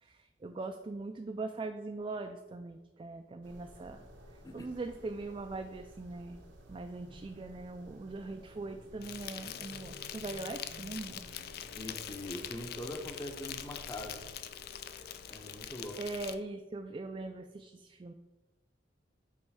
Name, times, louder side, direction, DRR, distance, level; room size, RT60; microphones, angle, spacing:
voice 1, 0.0-4.1 4.5-6.4 6.7-11.2 11.7-11.8 16.0-18.1, right 3 dB, 30° right, 6 dB, 0.3 m, -41 dB
sound 1, 3.4-14.3, right 1 dB, 85° right, 0.9 m, -54 dB
Insect, 9.0-16.3, left 9 dB, 55° left, 0.4 m, -44 dB
voice 2, 11.7-14.2 15.3-16.0, left 1 dB, 20° left, 2 dB, 0.7 m, -42 dB
8.4 x 3.1 x 4.8 m, 1.1 s
head